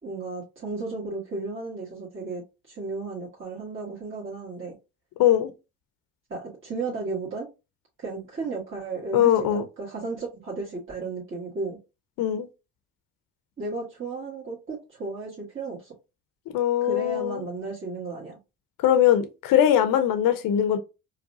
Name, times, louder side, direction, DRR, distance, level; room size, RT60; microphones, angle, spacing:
voice 1, 0.0-4.8 6.3-7.5 8.0-11.8 13.6-15.9 16.8-18.4, right 3 dB, 30° right, 1.6 m, -34 dB
voice 2, 5.2-5.5 9.1-9.6 12.2-12.5 16.5-17.4 18.8-20.8, left 10 dB, 55° left, 0.7 m, -21 dB
4.7 x 2.2 x 2.7 m
hypercardioid pair, 55°, 39 cm